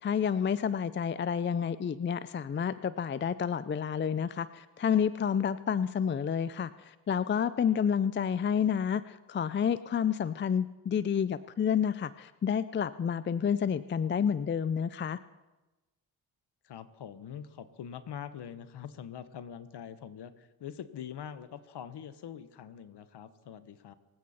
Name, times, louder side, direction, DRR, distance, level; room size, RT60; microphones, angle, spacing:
voice 1, 0.0-15.2, left 7 dB, 25° left, 16 dB, 0.5 m, -29 dB
voice 2, 16.6-23.9, left 8 dB, 55° left, 13 dB, 1.2 m, -44 dB
24.5 x 8.4 x 4.3 m, 1.1 s
hypercardioid pair, 50°, 48 cm